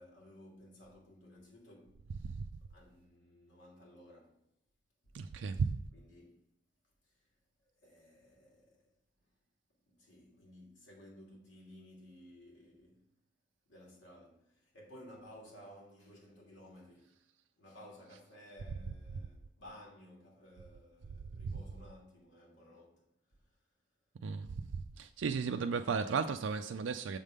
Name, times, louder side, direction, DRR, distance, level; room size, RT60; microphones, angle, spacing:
voice 1, 0.0-2.1 2.7-4.4 5.0-5.2 5.9-6.5 7.0-7.3 7.6-8.9 9.9-13.1 13.7-17.3 17.6-23.6, left 1 dB, 75° left, 2.6 m, -56 dB
voice 2, 5.1-5.7 21.4-21.6 24.2-24.5 25.0-27.2, right 5 dB, 80° right, 0.4 m, -34 dB
7.4 x 3.6 x 6.5 m
head